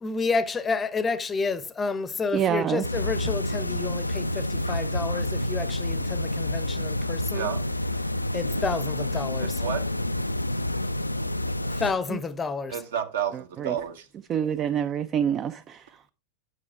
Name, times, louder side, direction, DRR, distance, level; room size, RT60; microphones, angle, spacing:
voice 1, 0.0-7.5 8.3-9.6 11.7-12.8, left 4 dB, 15° left, 0.7 m, -30 dB
voice 2, 2.3-2.9 12.1-12.2 13.3-13.8 14.3-16.0, right 9 dB, 30° right, 0.4 m, -27 dB
sound 1, 2.8-11.9, left 1 dB, 85° left, 0.3 m, -28 dB
voice 3, 9.4-9.8 12.7-14.1, right 9 dB, 60° right, 1.2 m, -31 dB
9.7 x 6.4 x 3.4 m
figure-of-eight pair, 90°, 0 cm